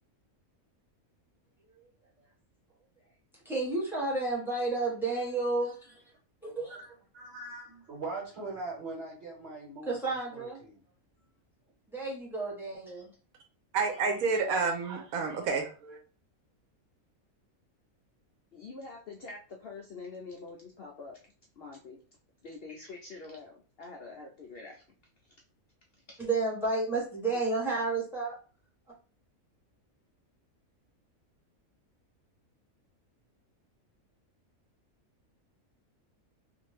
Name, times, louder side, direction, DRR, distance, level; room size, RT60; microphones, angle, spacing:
voice 1, 3.4-6.1 6.4-6.8 9.9-10.6 11.9-13.1 26.2-28.4, right 3 dB, ahead, -3 dB, 0.9 m, -31 dB
voice 2, 6.7-10.8, right 3 dB, 55° right, -2 dB, 1.5 m, -41 dB
voice 3, 13.7-16.0, right 4 dB, 85° right, 5 dB, 1.1 m, -29 dB
voice 4, 18.5-21.2 21.6-22.0 22.4-24.8 26.1-26.2 27.3-27.5, left 3 dB, 65° left, 0 dB, 0.5 m, -45 dB
2.7 x 2.5 x 3.2 m, 0.37 s
omnidirectional pair, 1.4 m